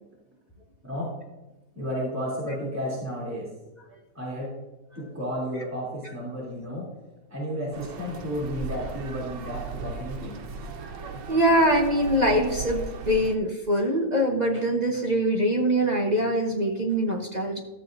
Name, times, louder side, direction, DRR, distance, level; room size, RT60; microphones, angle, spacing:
voice 1, 0.8-1.2 1.7-3.5 4.1-4.6 4.9-6.9 7.3-10.4, equal, 10° right, -7 dB, 2.9 m, -32 dB
sound 1, 7.7-13.4, right 4 dB, 80° right, 1.6 m, -37 dB
voice 2, 11.3-17.6, equal, 35° right, 1 dB, 0.7 m, -23 dB
13.0 x 7.5 x 2.6 m, 1.1 s
omnidirectional pair, 1.9 m